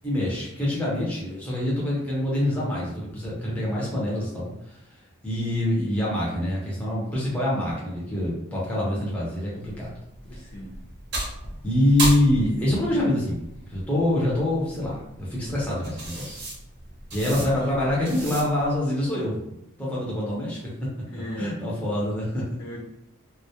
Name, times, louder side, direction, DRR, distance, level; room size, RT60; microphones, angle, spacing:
voice 1, 0.0-4.8 5.2-9.9 11.6-13.4 13.7-16.4 17.1-19.4 19.8-20.9 21.4-22.5, left 1 dB, 5° left, -6 dB, 0.6 m, -25 dB
sound 1, 9.6-18.8, right 2 dB, 50° right, 0.7 m, -35 dB
voice 2, 10.2-10.8 17.2-17.9 21.0-21.7 22.6-22.8, equal, 50° left, -6 dB, 0.5 m, -38 dB
2.1 x 2.0 x 2.8 m, 0.82 s
head